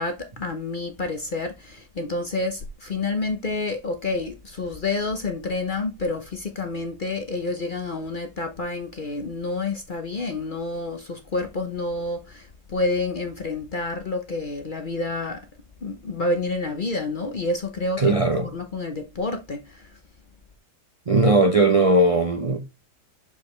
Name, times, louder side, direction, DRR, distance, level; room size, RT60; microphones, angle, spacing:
voice 1, 0.0-15.4 15.8-18.1 18.4-19.9, left 3 dB, 45° left, 0.6 m, -29 dB
voice 2, 18.0-18.5 21.1-22.6, right 2 dB, 60° right, 0.3 m, -18 dB
6.3 x 5.3 x 3.1 m
omnidirectional pair, 1.8 m